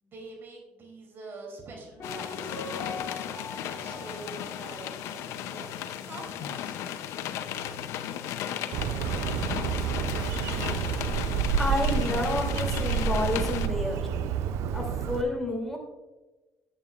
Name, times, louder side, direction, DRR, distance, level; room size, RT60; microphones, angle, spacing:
voice 1, 0.0-3.2 3.7-5.7 6.0-6.8, right 2 dB, 50° right, 1 dB, 3.1 m, -45 dB
sound 1, 2.0-13.7, left 10 dB, 80° left, 0.6 m, -35 dB
Piano, 2.0-5.8 6.0-6.1, left 3 dB, 50° left, 1.9 m, -42 dB
Bird, 8.7-15.2, right 7 dB, 75° right, 0.5 m, -29 dB
voice 2, 11.0-14.0 14.7-15.8, left 1 dB, 5° left, 0 dB, 2.8 m, -30 dB
10.5 x 8.9 x 2.5 m, 1.2 s
supercardioid pair, 85°, 5 cm